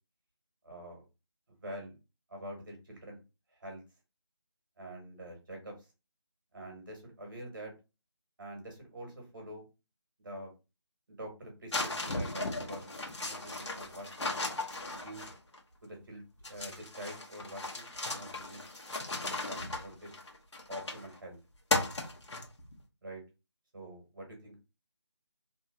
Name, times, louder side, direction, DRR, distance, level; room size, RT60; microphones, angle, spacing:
voice 1, 0.6-1.1 1.5-2.0 2.3-3.2 3.5-3.8 4.8-5.9 6.5-7.7 8.4-9.6 10.2-10.5 11.1-14.4 14.9-15.3 15.8-18.6 19.2-20.1 20.7-21.4 23.0-23.2 23.7-24.6, equal, 45° right, 1 dB, 1.4 m, -46 dB
sound 1, 11.7-15.6 16.4-21.1 21.7-22.7, left 2 dB, 80° left, 1.0 m, -36 dB
2.8 x 2.7 x 2.5 m, 0.28 s
figure-of-eight pair, 170°, 15 cm